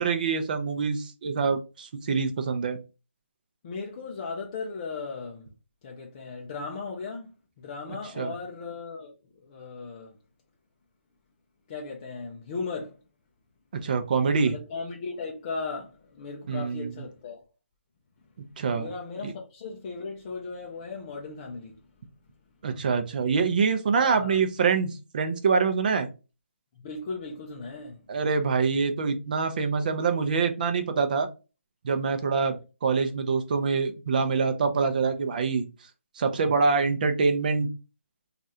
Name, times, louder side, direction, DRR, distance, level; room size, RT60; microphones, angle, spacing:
voice 1, 0.0-2.8 8.2-8.3 13.7-14.5 16.5-16.9 18.6-18.9 19.2-19.3 22.6-26.1 28.1-31.3 31.8-32.6 32.8-35.6 36.2-37.7, right 5 dB, 40° right, 0.6 m, -25 dB
voice 2, 3.6-5.5 5.8-10.2 11.7-13.0 14.4-17.4 18.7-21.8 24.0-24.4 26.8-28.0 32.3-32.6, left 4 dB, 25° left, 0.4 m, -37 dB
3.0 x 2.4 x 2.6 m
hypercardioid pair, 160°, 7 cm